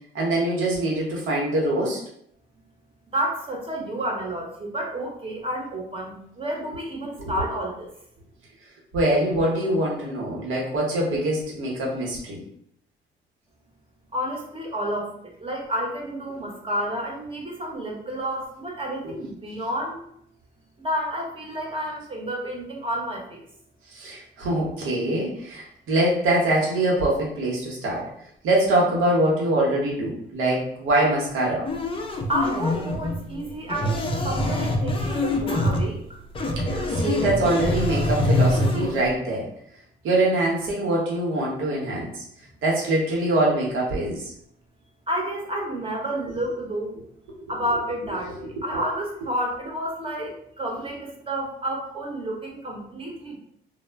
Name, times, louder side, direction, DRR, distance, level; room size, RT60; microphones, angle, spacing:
voice 1, 0.1-2.0 7.2-7.3 8.9-12.4 23.9-28.1 28.4-31.7 36.6-39.5 40.0-42.2 42.6-44.3 47.3-47.5, right 1 dB, 85° right, -3 dB, 0.9 m, -24 dB
voice 2, 3.1-7.9 14.1-15.1 15.4-20.1 20.8-23.5 32.3-36.2 45.1-46.9 47.5-53.4, right 1 dB, 25° right, -2 dB, 0.8 m, -30 dB
sound 1, 31.7-39.1, left 1 dB, 25° left, 0.4 m, -24 dB
2.1 x 2.0 x 3.3 m, 0.69 s
cardioid pair, 90°, 20 cm